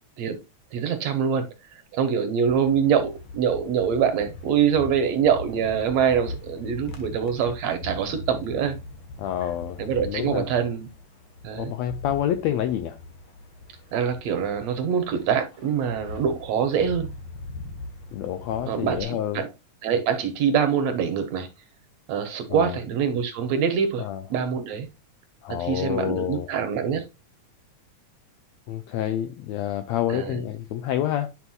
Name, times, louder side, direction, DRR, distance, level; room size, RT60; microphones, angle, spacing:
voice 1, 0.7-8.8 9.8-10.9 11.4-11.7 13.9-17.1 18.7-19.5 19.8-21.5 22.1-24.0 24.3-24.9 25.5-27.0 30.1-30.4, right 7 dB, 70° right, 1.8 m, -24 dB
sound 1, 2.4-19.0, left 2 dB, 55° left, 1.3 m, -41 dB
voice 2, 9.2-10.5 11.5-13.0 18.1-19.4 22.5-22.8 24.0-24.2 25.4-26.5 28.7-31.3, left 11 dB, 85° left, 1.5 m, -28 dB
9.2 x 5.9 x 2.3 m
omnidirectional pair, 3.7 m